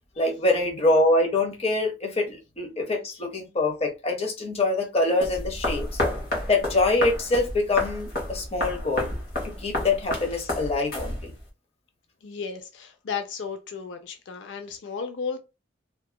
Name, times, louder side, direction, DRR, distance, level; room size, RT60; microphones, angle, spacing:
voice 1, 0.2-6.0 6.4-9.1 9.4-11.3, left 2 dB, 35° left, 0.7 m, -25 dB
sound 1, 5.2-11.5, left 1 dB, 50° left, 1.1 m, -31 dB
voice 2, 12.2-15.4, left 5 dB, 85° left, 0.4 m, -34 dB
2.7 x 2.3 x 2.3 m
head